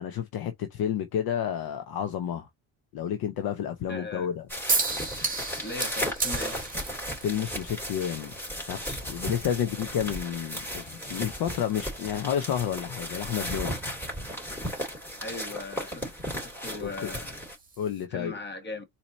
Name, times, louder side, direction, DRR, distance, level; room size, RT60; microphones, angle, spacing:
voice 1, 0.0-2.5 2.9-4.5 7.2-8.3 8.7-13.8 16.8-16.9 17.8-18.3, left 9 dB, 55° left, 0.7 m, -30 dB
voice 2, 3.9-4.3 5.6-6.6 15.2-16.1 16.4-17.4 18.1-18.8, left 3 dB, 25° left, 1.4 m, -38 dB
sound 1, 4.5-17.6, equal, 5° left, 2.6 m, -35 dB
sound 2, 4.7-18.0, right 4 dB, 20° right, 1.4 m, -37 dB
4.2 x 2.9 x 4.1 m
cardioid pair, 100°, 45 cm